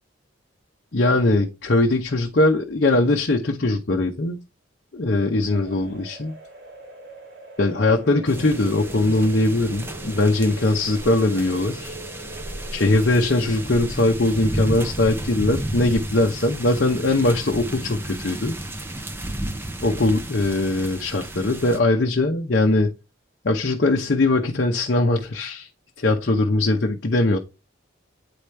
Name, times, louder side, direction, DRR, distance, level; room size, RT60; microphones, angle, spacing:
voice 1, 0.9-4.4 4.9-6.4 7.6-11.9 12.7-18.5 19.8-22.9 23.4-25.7 26.0-27.4, left 2 dB, 55° left, 0.8 m, -21 dB
sound 1, 5.5-13.6, right 1 dB, 65° right, 2.5 m, -42 dB
sound 2, 8.3-21.8, right 1 dB, 10° right, 0.5 m, -33 dB
8.6 x 5.0 x 3.3 m
head